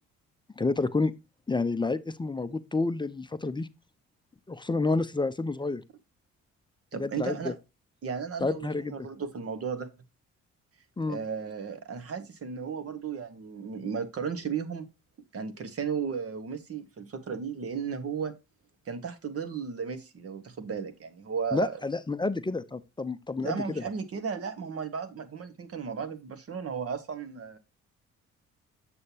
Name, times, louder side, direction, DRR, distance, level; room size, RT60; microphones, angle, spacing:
voice 1, 0.6-1.1 1.5-3.7 4.5-5.8 6.9-7.5 8.4-9.0 11.0-11.2 21.5-23.8, left 3 dB, 15° left, 0.5 m, -29 dB
voice 2, 6.9-7.5 8.0-9.9 11.1-14.9 15.3-18.3 18.8-21.8 23.4-27.6, right 6 dB, 50° right, 1.4 m, -35 dB
7.6 x 6.5 x 2.8 m
cardioid pair, 90°, 30 cm